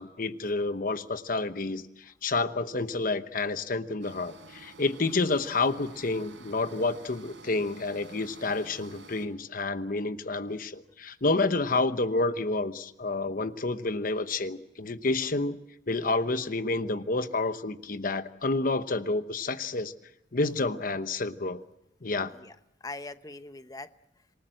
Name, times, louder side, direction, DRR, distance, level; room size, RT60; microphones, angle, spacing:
voice 1, 0.0-1.8 2.2-15.6 15.9-19.9 20.3-21.6 22.0-22.3, left 3 dB, 50° left, 11 dB, 1.0 m, -29 dB
sound 1, 4.0-9.3, right 3 dB, 85° right, 4.1 m, -50 dB
voice 2, 22.3-23.9, left 2 dB, 20° left, 11 dB, 0.9 m, -43 dB
27.0 x 19.0 x 7.7 m, 0.84 s
head